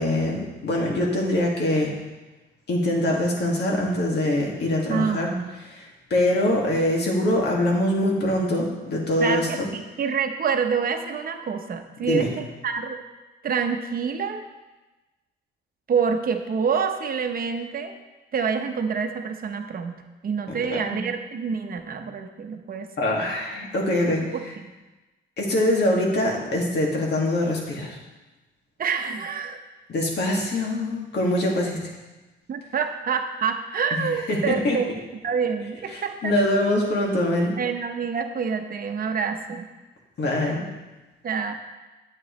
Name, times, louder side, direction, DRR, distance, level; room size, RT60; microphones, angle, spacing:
voice 1, 0.0-1.9 2.7-5.3 5.7-9.7 12.0-12.3 20.5-21.0 23.0-24.2 25.4-28.0 29.9-31.8 33.9-34.8 35.9-37.6 40.2-40.6, left 1 dB, 60° left, -2 dB, 2.1 m, -24 dB
voice 2, 4.9-5.5 9.2-13.0 13.4-14.4 15.9-17.9 18.3-22.9 24.3-24.7 28.8-29.6 32.5-36.3 37.6-39.7 41.2-41.5, right 6 dB, 45° right, 6 dB, 0.9 m, -27 dB
9.2 x 7.7 x 3.2 m, 1.1 s
cardioid pair, 90°, 20 cm